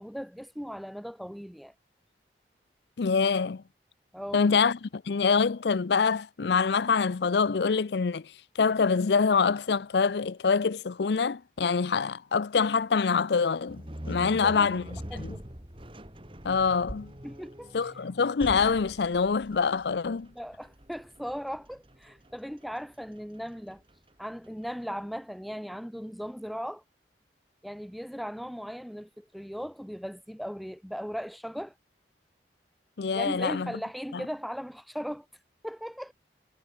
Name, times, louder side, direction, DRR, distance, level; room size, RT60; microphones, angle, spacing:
voice 1, 0.0-1.7 4.1-4.5 14.3-14.7 15.1-15.4 17.2-17.8 20.4-23.8 24.2-26.8 27.6-31.7 33.1-35.3 35.6-36.1, equal, ahead, 0.6 m, -38 dB
voice 2, 3.0-3.6 4.3-8.3 8.6-14.9 15.1-15.3 16.4-17.1 17.7-20.3 33.0-33.7 34.1-34.2, left 5 dB, 70° left, 0.5 m, -25 dB
sound 1, 13.7-24.8, equal, 30° right, 3.5 m, -44 dB
head